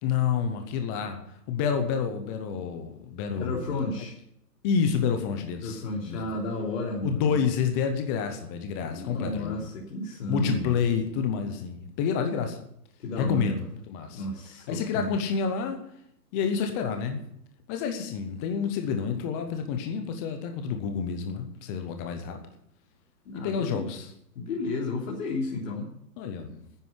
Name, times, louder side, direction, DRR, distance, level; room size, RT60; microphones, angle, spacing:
voice 1, 0.0-1.2 1.5-3.7 4.6-6.2 7.0-9.7 10.3-12.6 13.2-13.5 13.9-14.2 14.7-15.8 16.3-17.2 17.7-22.4 23.3-24.1 26.2-26.6, left 6 dB, 10° left, 6 dB, 0.5 m, -28 dB
voice 2, 3.3-4.2 5.6-7.4 8.8-10.8 13.0-13.7 14.1-15.1 23.2-23.8 24.3-25.9, left 2 dB, 50° left, -3 dB, 3.4 m, -32 dB
9.9 x 9.1 x 9.5 m, 0.73 s
hypercardioid pair, 135°, 50 cm